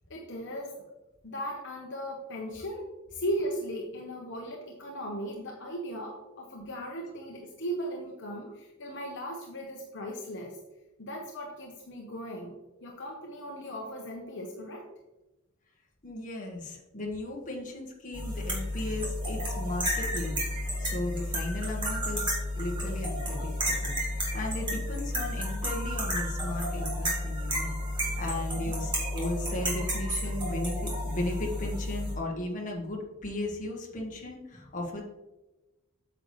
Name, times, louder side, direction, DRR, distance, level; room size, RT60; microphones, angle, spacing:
voice 1, 0.1-0.8 1.2-2.8 3.1-10.6 11.0-14.8 28.6-28.9, equal, 55° left, -1 dB, 1.0 m, -37 dB
voice 2, 16.0-20.4 20.8-27.8 28.1-35.0, left 1 dB, 35° left, -1 dB, 1.5 m, -36 dB
sound 1, 18.1-32.1, equal, 20° right, 2.0 m, -31 dB
8.7 x 6.9 x 3.2 m, 1.0 s
head